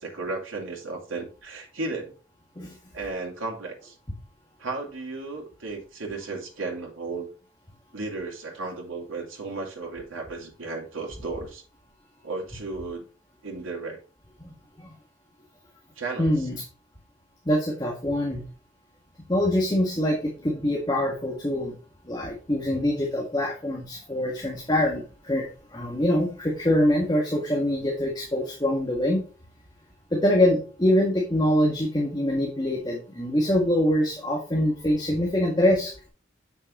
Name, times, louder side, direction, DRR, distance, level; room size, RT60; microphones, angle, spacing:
voice 1, 0.0-2.1 2.9-4.0 4.6-7.3 7.9-11.6 12.2-13.1 13.4-14.0 16.0-16.5, right 3 dB, 90° right, -1 dB, 2.7 m, -34 dB
voice 2, 14.4-14.9 16.2-16.6 17.5-18.4 19.3-21.8 22.1-29.2 30.1-35.9, left 1 dB, 20° left, -1 dB, 1.8 m, -24 dB
8.0 x 6.5 x 3.2 m, 0.36 s
head